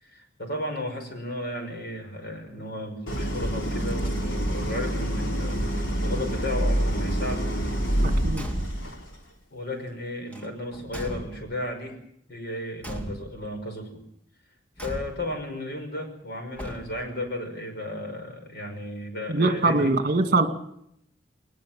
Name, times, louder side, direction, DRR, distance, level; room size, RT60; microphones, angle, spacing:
voice 1, 0.0-7.5 9.5-12.0 12.3-14.0 14.8-20.0, left 1 dB, 55° left, 5 dB, 5.6 m, -34 dB
Idling, 3.1-9.1, right 1 dB, 80° left, 3.7 m, -27 dB
voice 2, 8.0-8.5 19.3-20.5, right 3 dB, 45° right, 7 dB, 2.2 m, -22 dB
Car / Truck / Slam, 8.3-9.0 10.3-11.7 12.8-13.6 14.8-15.5 16.5-17.2, equal, 10° left, 2.5 m, -38 dB
21.0 x 20.0 x 7.5 m, 0.74 s
head